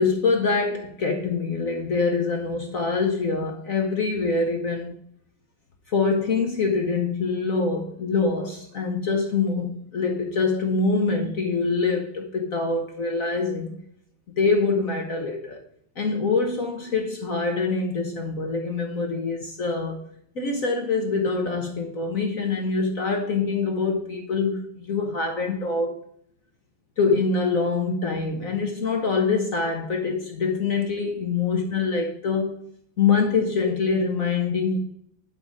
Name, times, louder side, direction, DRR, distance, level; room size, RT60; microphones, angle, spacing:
voice 1, 0.0-5.0 5.9-13.8 14.3-15.6 16.0-20.0 20.3-26.0 27.0-32.6 33.0-34.8, left 4 dB, 50° left, 1.2 m, -24 dB
12.0 x 4.1 x 4.9 m
omnidirectional pair, 2.2 m